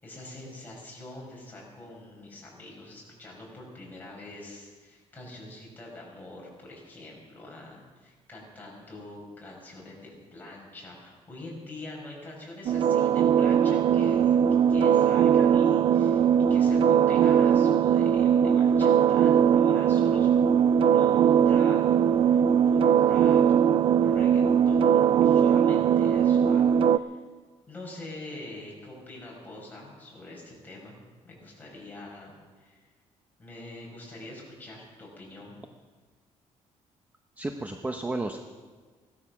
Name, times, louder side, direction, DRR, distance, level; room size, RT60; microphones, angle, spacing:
voice 1, 0.0-14.3 14.7-20.3 20.8-21.8 22.1-23.4 24.0-27.2 27.7-31.0 31.2-32.9 33.4-35.6, left 2 dB, 15° left, -3 dB, 5.8 m, -44 dB
sound 1, 12.7-27.0, right 8 dB, 50° right, 0.5 m, -20 dB
voice 2, 37.4-38.4, right 2 dB, 15° right, 5 dB, 0.8 m, -32 dB
17.0 x 13.0 x 6.0 m, 1.4 s
cardioid pair, 135°, 12 cm